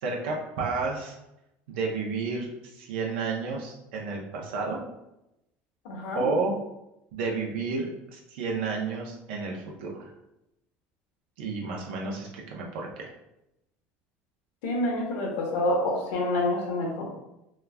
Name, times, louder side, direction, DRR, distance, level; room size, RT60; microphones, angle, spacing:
voice 1, 0.0-1.1 1.7-4.8 6.1-6.5 7.1-10.1 11.4-13.1, right 4 dB, 85° right, -1 dB, 0.7 m, -31 dB
voice 2, 5.8-6.3 14.6-17.2, left 1 dB, 80° left, -1 dB, 0.9 m, -27 dB
3.0 x 2.4 x 2.3 m, 0.88 s
supercardioid pair, 105°, 5 cm